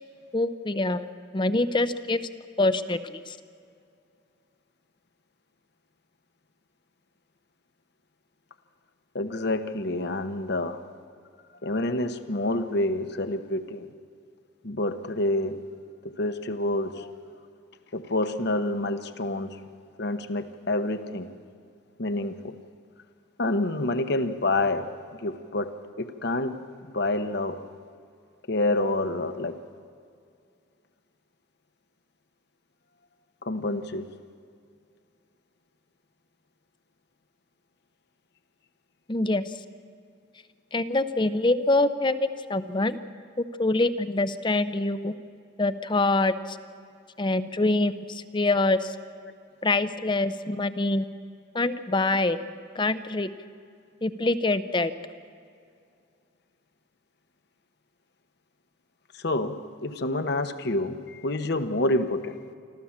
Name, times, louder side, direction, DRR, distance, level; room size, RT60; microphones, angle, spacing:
voice 1, 0.3-2.2 2.6-3.4 39.1-39.5 40.7-43.0 43.6-45.1 45.6-46.6 47.2-48.9 49.6-51.1 51.5-52.4 52.8-53.3 54.0-54.9, left 2 dB, 25° left, 12 dB, 0.6 m, -25 dB
voice 2, 9.1-10.8 11.6-13.9 14.6-15.6 16.0-17.1 17.9-19.6 20.0-21.3 22.0-22.6 23.4-24.9 25.2-26.6 26.9-27.6 28.5-29.6 33.4-34.1 59.1-62.4, left 2 dB, 55° left, 9 dB, 1.0 m, -28 dB
26.0 x 14.0 x 7.3 m, 2.3 s
head